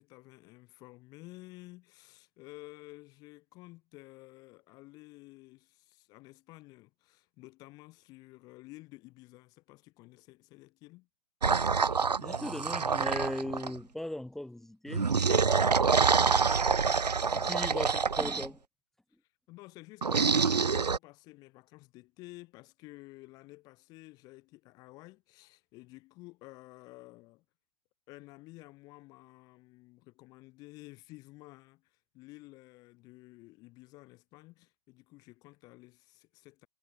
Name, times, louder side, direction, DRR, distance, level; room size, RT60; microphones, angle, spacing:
voice 1, 0.0-11.1 19.5-27.4 28.1-36.7, left 21 dB, 20° left, 3.2 m, -52 dB
sound 1, 11.4-13.8 14.9-18.5 20.0-21.0, right 5 dB, 80° right, 0.8 m, -26 dB
voice 2, 12.2-15.1 17.3-18.6, left 1 dB, ahead, 1.2 m, -38 dB
figure-of-eight pair, 145°, 20 cm